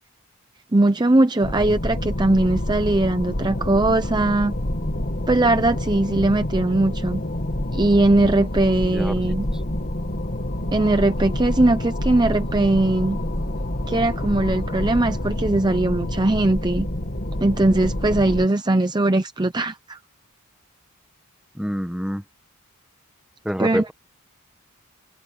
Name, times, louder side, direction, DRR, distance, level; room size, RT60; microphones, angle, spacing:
voice 1, 0.7-4.5 5.3-7.2 7.7-9.4 10.7-13.2 13.9-16.9 17.4-20.0 23.6-23.8, right 2 dB, 20° right, 0.6 m, -20 dB
sound 1, 1.4-18.5, left 1 dB, 45° left, 2.3 m, -27 dB
voice 2, 8.9-9.6 21.5-22.2 23.4-23.9, equal, 5° right, 1.5 m, -27 dB
head